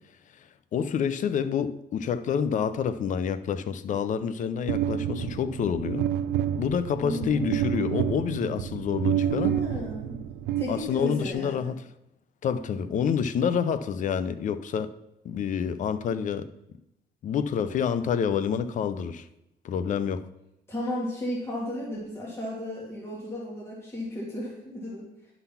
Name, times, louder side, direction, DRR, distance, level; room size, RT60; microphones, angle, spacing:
voice 1, 0.7-6.1 6.6-9.6 10.7-11.8 12.4-14.9 15.2-16.5 17.2-19.3 19.6-20.3, left 7 dB, 50° left, 0.6 m, -28 dB
sound 1, 4.7-11.3, right 10 dB, 90° right, 0.5 m, -29 dB
voice 2, 7.0-7.5 9.2-10.2 10.6-11.7 20.7-25.0, left 1 dB, 15° left, 2.2 m, -34 dB
11.0 x 4.0 x 5.7 m
cardioid pair, 110°, 17 cm